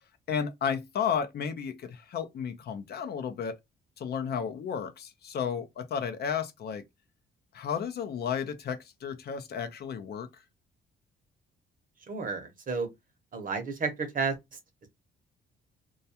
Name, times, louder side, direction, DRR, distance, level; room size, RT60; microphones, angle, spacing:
voice 1, 0.3-3.6 4.0-6.8 7.5-10.3, left 7 dB, 55° left, 0.5 m, -33 dB
voice 2, 12.1-12.9 13.3-14.6, right 4 dB, 45° right, 0.8 m, -32 dB
2.3 x 2.2 x 2.7 m
cardioid pair, 90°, 20 cm